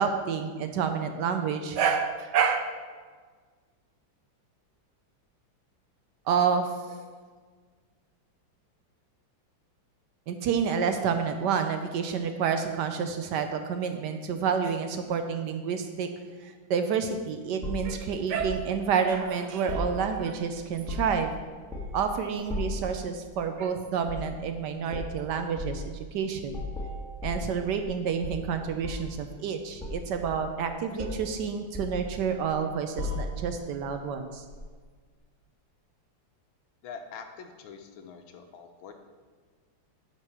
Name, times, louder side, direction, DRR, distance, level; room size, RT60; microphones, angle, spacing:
voice 1, 0.0-2.7 6.3-7.0 10.3-16.1 16.4-21.3 21.9-26.6 27.2-34.4, right 6 dB, 70° right, 7 dB, 1.1 m, -29 dB
sound 1, 17.6-18.6 19.7-20.4 20.7-21.3 21.7-22.1 22.5-22.9 24.0-24.3 24.9-25.1 25.6-25.8 26.5-27.9 28.2-29.2 29.8-30.7 31.0-31.3 31.7-32.6 33.0-33.6 34.5-34.7, left 2 dB, ahead, 1.1 m, -35 dB
voice 2, 36.8-38.9, left 6 dB, 85° left, 6 dB, 1.6 m, -44 dB
8.9 x 4.5 x 5.9 m, 1.5 s
omnidirectional pair, 2.2 m